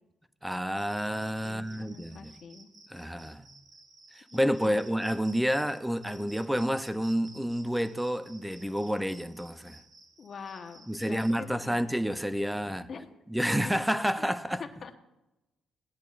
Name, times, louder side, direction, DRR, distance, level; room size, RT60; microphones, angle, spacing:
voice 1, 0.4-2.3 2.9-3.6 4.1-9.8 10.9-12.9 13.3-14.6, equal, 5° right, 0.6 m, -29 dB
Cricket, 0.7-11.3, right 3 dB, 45° right, 4.2 m, -54 dB
voice 2, 1.4-2.7 4.3-4.8 10.2-11.8 12.6-13.1 14.2-14.3 14.6-14.9, left 5 dB, 50° left, 1.1 m, -45 dB
17.5 x 10.5 x 2.5 m
cardioid pair, 90°, 0 cm